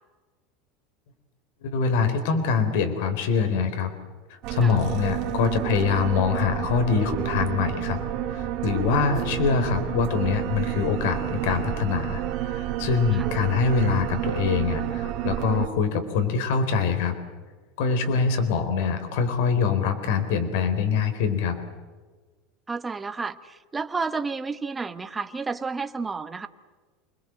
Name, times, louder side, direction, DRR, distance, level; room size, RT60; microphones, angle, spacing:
voice 1, 1.6-3.9 4.3-8.0 8.3-17.2 17.8-21.6, left 5 dB, 65° left, 8 dB, 4.0 m, -24 dB
sound 1, 4.4-15.7, right 11 dB, 40° right, 2.8 m, -30 dB
voice 2, 22.7-26.5, right 4 dB, 10° right, 9 dB, 1.1 m, -31 dB
28.5 x 21.0 x 7.7 m, 1.4 s
supercardioid pair, 175°, 0 cm